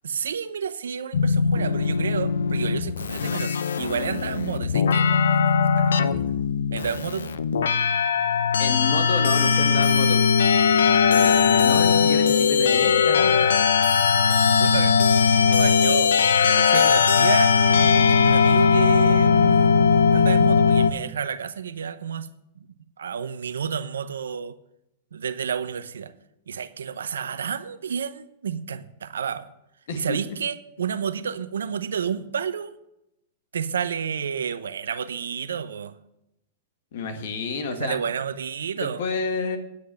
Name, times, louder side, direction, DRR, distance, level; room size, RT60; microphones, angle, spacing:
voice 1, 0.0-6.3 6.7-7.3 10.9-11.2 14.5-15.0 15.4-16.1 16.4-22.3 23.0-24.6 25.1-26.1 26.5-29.5 29.9-32.7 33.5-35.9 37.7-39.0, right 7 dB, 85° right, 0.8 m, -30 dB
sound 1, 1.1-20.9, left 6 dB, 85° left, 0.7 m, -19 dB
voice 2, 8.6-10.2 11.1-13.4 29.9-30.2 36.9-38.0 38.8-39.6, left 4 dB, 70° left, 1.9 m, -29 dB
9.8 x 6.5 x 8.4 m
hypercardioid pair, 120°, 0 cm